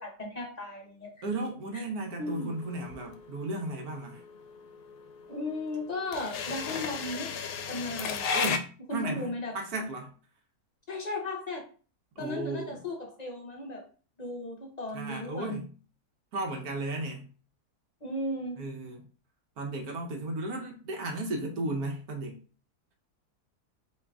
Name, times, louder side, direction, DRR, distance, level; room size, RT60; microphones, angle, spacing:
voice 1, 0.0-1.1 1.7-1.8 2.2-2.5 5.3-7.4 7.7-8.3 8.9-9.5 10.9-11.6 12.2-13.8 14.2-15.6 18.0-18.6, left 2 dB, 40° left, 0.6 m, -36 dB
voice 2, 1.2-4.2 8.3-10.1 12.2-12.8 14.9-15.7 16.3-17.3 18.6-19.0 19.6-22.4, right 2 dB, 70° right, 1.2 m, -35 dB
sound 1, 2.3-8.6, left 6 dB, 75° left, 1.0 m, -33 dB
3.6 x 3.0 x 3.4 m
omnidirectional pair, 1.7 m